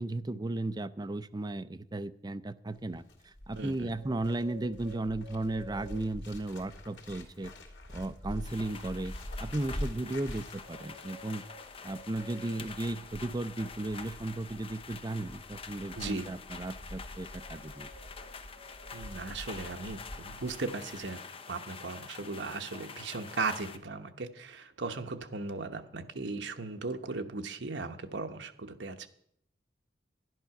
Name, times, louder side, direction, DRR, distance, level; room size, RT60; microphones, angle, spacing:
voice 1, 0.0-7.5 7.9-9.1 9.4-11.4 11.8-17.9, right 2 dB, 20° right, 12 dB, 0.5 m, -35 dB
Bird, 2.8-20.6 20.8-21.1, equal, 85° left, 2.3 m, -45 dB
voice 2, 3.6-3.9 15.9-16.3 18.9-29.1, right 3 dB, 75° right, 7 dB, 1.0 m, -37 dB
sound 1, 8.4-23.8, left 5 dB, 30° left, 0.8 m, -47 dB
11.5 x 11.0 x 5.9 m, 0.69 s
head